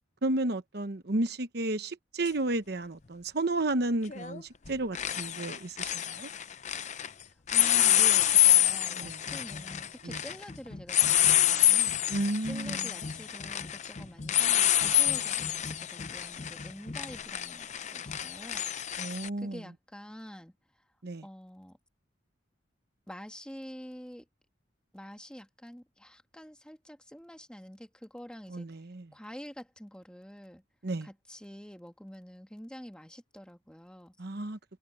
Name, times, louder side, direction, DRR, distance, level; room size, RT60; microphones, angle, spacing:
voice 1, 0.2-6.3 7.8-7.9 8.9-9.2 10.0-10.2 12.1-13.0 19.0-19.6 21.0-21.3 28.5-29.1 30.8-31.1 34.2-34.6, right 2 dB, 60° right, 1.0 m, -32 dB
sound 1, 2.3-2.4 4.1-4.4 4.7-7.1 7.5-19.3, left 11 dB, 40° left, 0.7 m, -27 dB
voice 2, 7.5-11.9 12.5-18.7 18.9-20.6 21.2-21.8 23.1-24.3 24.9-28.8 29.1-30.6 31.0-34.2, equal, 5° left, 1.7 m, -47 dB
head